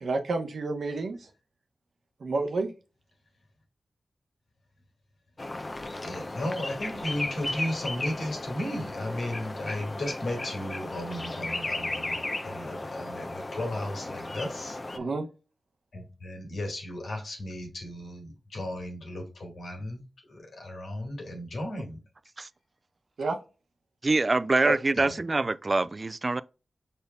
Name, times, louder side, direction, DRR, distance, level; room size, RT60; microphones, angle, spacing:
voice 1, 0.0-1.2 2.2-2.7 15.0-15.3 23.2-23.4 24.6-24.7, right 3 dB, 80° right, 0.9 m, -29 dB
sound 1, 5.4-15.0, left 2 dB, 35° left, 0.7 m, -35 dB
voice 2, 6.0-14.8 15.9-22.0 25.0-25.1, left 1 dB, 85° left, 2.1 m, -35 dB
voice 3, 24.0-26.4, right 3 dB, 45° right, 0.3 m, -25 dB
5.1 x 4.3 x 2.3 m
cardioid pair, 55°, 0 cm